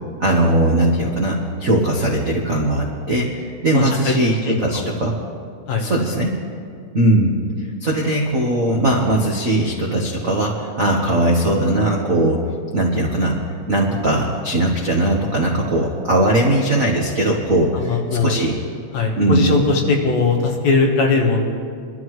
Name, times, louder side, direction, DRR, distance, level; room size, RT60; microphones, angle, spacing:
voice 1, 0.2-5.2 5.8-6.3 6.9-7.4 7.8-12.4 12.7-13.4 13.7-18.5 19.2-19.5, right 1 dB, 80° right, -1 dB, 0.7 m, -19 dB
voice 2, 3.7-4.1 4.4-4.9 5.7-5.9 17.7-18.3 18.9-21.4, left 4 dB, 65° left, 1 dB, 2.6 m, -19 dB
23.5 x 12.5 x 3.2 m, 2.2 s
omnidirectional pair, 3.5 m